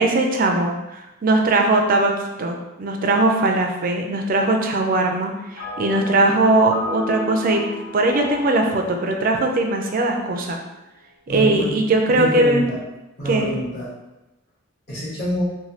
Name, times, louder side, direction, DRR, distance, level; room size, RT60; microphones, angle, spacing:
voice 1, 0.0-2.1 2.4-7.6 7.9-10.6 11.3-12.6 13.3-13.5, right 2 dB, 40° right, 2 dB, 0.3 m, -20 dB
sound 1, 5.6-11.1, left 2 dB, 70° left, 1.0 m, -35 dB
voice 2, 11.3-11.7 12.1-12.8 13.2-13.9 14.9-15.4, right 1 dB, 50° left, -9 dB, 1.2 m, -26 dB
3.1 x 2.2 x 2.7 m, 1.0 s
head